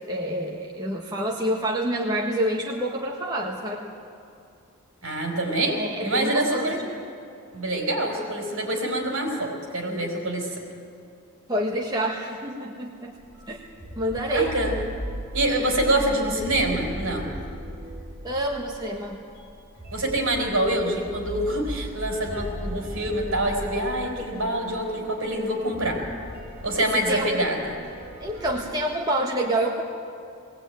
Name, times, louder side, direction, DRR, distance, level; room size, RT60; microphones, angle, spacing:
voice 1, 0.0-3.9 5.7-6.9 11.5-13.2 13.5-13.6 14.0-14.6 18.2-19.2 26.9-27.5 28.2-29.8, right 1 dB, 20° right, -1 dB, 1.5 m, -27 dB
voice 2, 5.0-6.8 7.5-10.6 14.3-14.8 15.3-17.3 19.9-26.0 26.6-27.7, right 1 dB, 70° right, 1 dB, 4.4 m, -26 dB
sound 1, 13.1-28.6, equal, 45° right, 5.7 m, -38 dB
20.5 x 17.5 x 9.1 m, 2.6 s
head